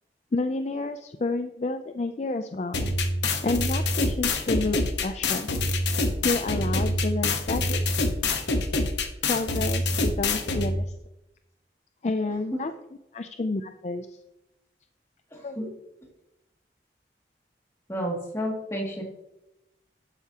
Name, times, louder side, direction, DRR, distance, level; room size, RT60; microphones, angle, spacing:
voice 1, 0.3-2.8 3.4-5.5 6.2-7.8 9.3-10.9 12.0-12.7 13.1-14.2 15.4-15.6, left 3 dB, 40° left, 9 dB, 0.4 m, -29 dB
sound 1, 2.7-10.7, left 2 dB, 80° left, 1.2 m, -26 dB
voice 2, 15.3-15.7 17.9-19.0, equal, 15° left, -2 dB, 2.3 m, -31 dB
12.0 x 8.1 x 2.9 m, 0.92 s
head